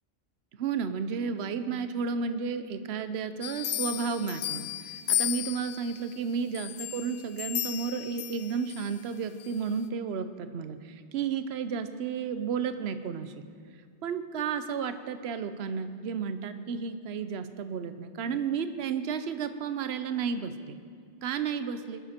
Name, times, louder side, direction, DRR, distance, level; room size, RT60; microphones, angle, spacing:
voice 1, 0.6-13.4 14.0-20.8 21.2-22.0, right 6 dB, 70° right, 10 dB, 1.0 m, -32 dB
sound 1, 3.4-6.0 6.5-8.9 9.4-9.5, left 12 dB, 80° left, 0.9 m, -34 dB
21.0 x 12.0 x 4.3 m, 2.1 s
omnidirectional pair, 1.2 m